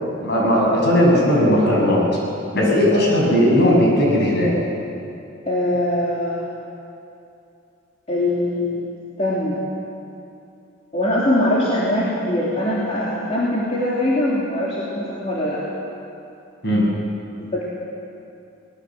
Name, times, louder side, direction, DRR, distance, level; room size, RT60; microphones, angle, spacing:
voice 1, 0.2-2.0 2.5-4.5 16.6-16.8, equal, 55° left, -3 dB, 7.4 m, -17 dB
voice 2, 5.5-6.4 8.1-8.8 9.2-9.6 10.9-15.6 17.4-17.6, left 1 dB, 30° left, -7 dB, 3.1 m, -22 dB
24.0 x 19.5 x 7.6 m, 2.7 s
head